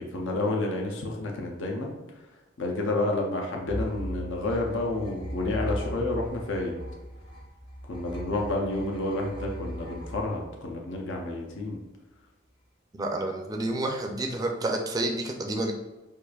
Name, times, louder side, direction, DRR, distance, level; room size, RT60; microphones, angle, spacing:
voice 1, 0.0-2.0 2.6-6.7 7.9-11.8, left 2 dB, 70° left, 1 dB, 0.6 m, -30 dB
sound 1, 3.7-11.2, equal, 25° left, 0.7 m, -38 dB
voice 2, 12.9-15.7, right 1 dB, 20° right, 2 dB, 0.4 m, -29 dB
4.6 x 2.5 x 2.3 m, 1.1 s
head